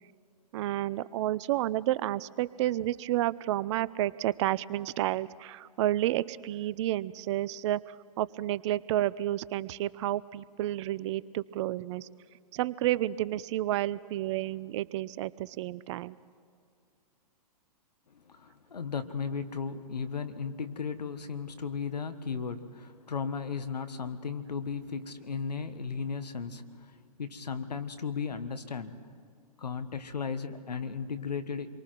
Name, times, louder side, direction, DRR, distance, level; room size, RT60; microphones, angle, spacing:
voice 1, 0.5-12.1 12.5-16.2, right 14 dB, 45° right, 18 dB, 0.6 m, -30 dB
voice 2, 18.1-29.1 29.6-31.7, left 5 dB, 85° left, 10 dB, 1.5 m, -36 dB
28.0 x 23.0 x 4.6 m, 2.3 s
hypercardioid pair, 115°, 20 cm